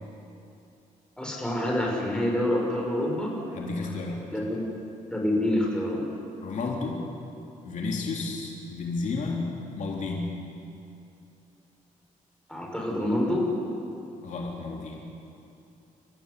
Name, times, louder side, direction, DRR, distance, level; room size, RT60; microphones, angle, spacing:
voice 1, 1.2-3.3 4.3-4.6 5.1-6.0 12.5-13.5, left 1 dB, 5° left, -2 dB, 6.0 m, -27 dB
voice 2, 3.5-4.2 6.4-7.0 7.6-10.4 14.2-15.0, left 3 dB, 65° left, -1 dB, 3.4 m, -32 dB
29.0 x 15.0 x 8.4 m, 2.8 s
cardioid pair, 120°, 14 cm